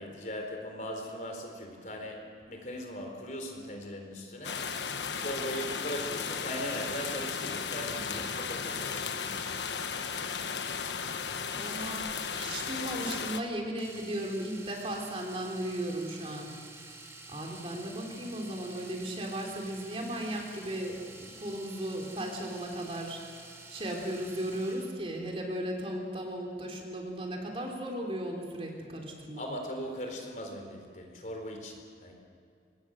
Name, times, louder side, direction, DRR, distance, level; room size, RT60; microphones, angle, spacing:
voice 1, 0.0-4.6 5.2-9.5 29.4-32.1, equal, 45° left, 2 dB, 4.1 m, -39 dB
sound 1, 4.4-13.4, left 6 dB, 90° left, 1.3 m, -35 dB
voice 2, 11.5-16.5 16.8-16.9 17.3-23.2 23.7-29.5, right 1 dB, 30° right, 0 dB, 3.5 m, -36 dB
Domestic sounds home sounds, 13.8-25.0 27.1-27.3 27.6-27.7, right 2 dB, 15° right, 2.3 m, -49 dB
25.5 x 21.0 x 6.4 m, 2.4 s
head